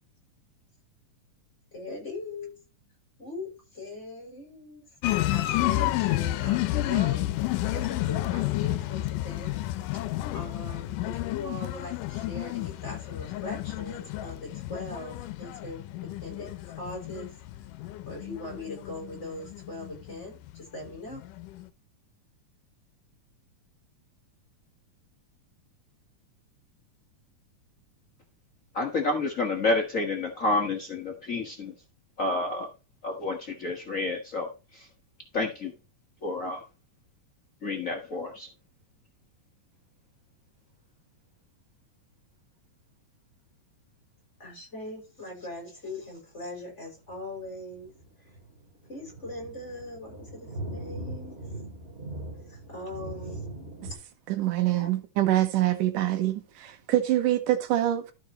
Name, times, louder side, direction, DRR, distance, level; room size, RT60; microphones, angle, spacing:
voice 1, 1.7-2.5 3.2-4.8 5.3-9.5 10.3-17.3 18.1-21.2 44.4-47.9 48.9-51.4 52.5-53.4 54.8-54.9, left 2 dB, 20° left, 5.7 m, -40 dB
sound 1, 5.0-20.6 20.8-21.7, left 16 dB, 85° left, 2.3 m, -31 dB
voice 2, 28.7-31.7 32.2-32.7 33.0-34.9 35.3-35.7 36.2-36.6 37.6-38.5, left 2 dB, 55° left, 0.8 m, -29 dB
sound 2, 47.1-53.9, right 1 dB, 20° right, 2.6 m, -40 dB
voice 3, 54.3-58.1, right 13 dB, 80° right, 2.6 m, -25 dB
13.0 x 5.5 x 4.2 m
omnidirectional pair, 3.7 m